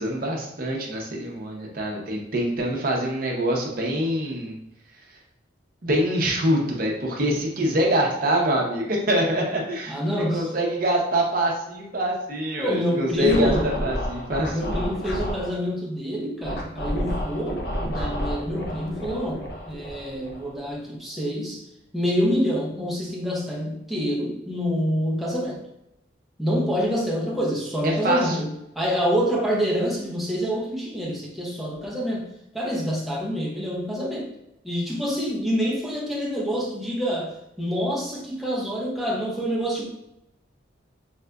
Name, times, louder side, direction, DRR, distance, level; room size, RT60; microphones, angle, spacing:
voice 1, 0.0-4.5 5.8-9.9 10.3-14.8 27.8-28.4, right 1 dB, 50° right, -1 dB, 0.7 m, -25 dB
voice 2, 9.9-10.5 12.6-13.7 14.5-21.6 21.9-25.6 26.4-32.3 32.5-34.3 34.6-39.8, equal, ahead, -4 dB, 0.6 m, -27 dB
Scratching (performance technique), 13.2-15.5 16.4-20.7, equal, 55° left, 0.6 m, -30 dB
4.2 x 2.4 x 2.2 m, 0.86 s
head